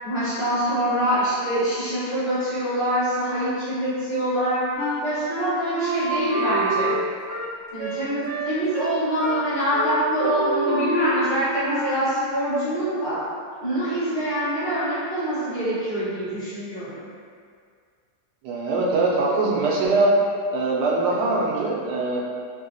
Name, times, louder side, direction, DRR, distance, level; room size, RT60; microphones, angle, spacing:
voice 1, 0.0-4.7 5.0-6.9 7.7-13.2 13.6-17.0, right 1 dB, 45° left, -13 dB, 1.6 m, -25 dB
Wind instrument woodwind instrument, 4.8-12.2, right 1 dB, 55° right, 1.0 m, -28 dB
voice 2, 18.4-20.1 20.5-22.2, right 3 dB, 85° right, -4 dB, 1.2 m, -22 dB
3.3 x 2.7 x 2.6 m, 2.1 s
omnidirectional pair, 1.7 m